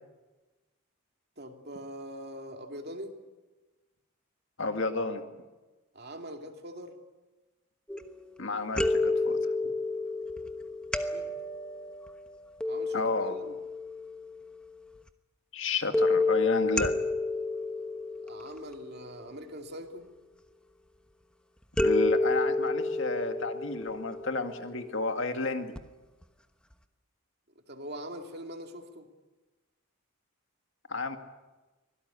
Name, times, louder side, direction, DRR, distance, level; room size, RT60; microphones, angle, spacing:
voice 1, 1.4-3.1 5.9-6.9 11.1-11.3 12.6-13.5 18.3-20.1 27.7-29.1, equal, 45° right, 4 dB, 2.6 m, -42 dB
voice 2, 4.6-5.2 8.4-9.4 12.9-13.4 15.5-16.9 21.8-25.7 30.9-31.2, left 3 dB, 60° left, 7 dB, 2.0 m, -31 dB
sound 1, 7.9-8.4 8.8-14.4 15.9-19.2 21.8-25.0 25.8-25.9 26.2-26.3, left 2 dB, 5° left, 1.1 m, -30 dB
24.5 x 18.0 x 9.8 m, 1.2 s
head